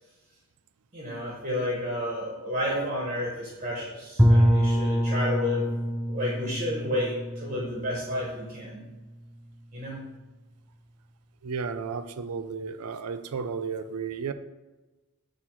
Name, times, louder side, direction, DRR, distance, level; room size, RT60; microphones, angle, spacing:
voice 1, 0.9-5.7 6.1-8.9 9.7-10.0, left 1 dB, 30° right, -3 dB, 1.2 m, -31 dB
Bowed string instrument, 4.2-9.0, equal, 5° right, 0.4 m, -25 dB
voice 2, 11.4-14.3, right 5 dB, 80° right, 11 dB, 0.5 m, -33 dB
7.5 x 3.0 x 6.1 m, 1.2 s
head